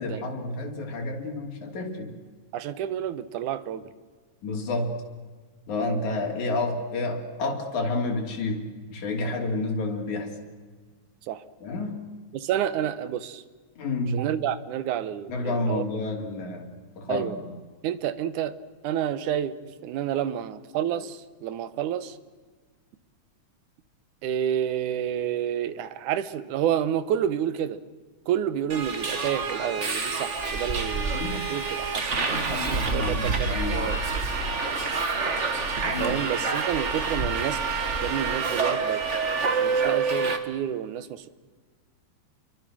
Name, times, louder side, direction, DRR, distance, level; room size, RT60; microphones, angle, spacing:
voice 1, 0.0-2.1 4.4-5.0 5.7-10.3 11.6-12.0 13.8-14.2 15.3-16.7 17.0-17.3 31.1-31.4 32.3-33.9 35.8-36.2, left 2 dB, 75° left, 1 dB, 4.4 m, -30 dB
voice 2, 2.5-3.9 11.3-11.4 12.3-13.4 14.1-16.1 17.1-17.4 17.8-18.6 18.8-22.2 24.2-27.8 28.3-34.0 35.8-37.6 38.0-39.0 39.5-41.3, right 10 dB, 85° right, 14 dB, 2.5 m, -29 dB
Subway metro underground, 28.7-40.4, right 4 dB, 35° right, 1.3 m, -27 dB
28.5 x 23.0 x 6.2 m, 1.5 s
omnidirectional pair, 3.4 m